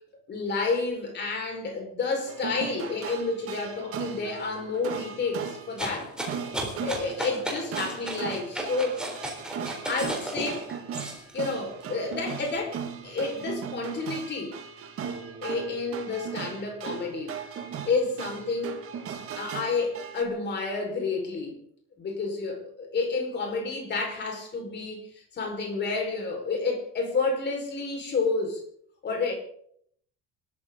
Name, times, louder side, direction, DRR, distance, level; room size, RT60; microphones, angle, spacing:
voice 1, 0.3-6.1 6.8-8.9 9.6-10.7 11.3-14.6 15.4-17.4 17.9-18.8 19.4-21.6 22.0-25.0 25.3-28.6 29.0-29.3, left 4 dB, 30° left, 2 dB, 5.3 m, -30 dB
sound 1, 2.3-20.2, right 7 dB, 40° right, 2.2 m, -38 dB
sound 2, 5.8-11.4 11.9-13.3, right 1 dB, ahead, 3.7 m, -35 dB
27.0 x 13.5 x 4.0 m, 0.64 s
cardioid pair, 175°, 34 cm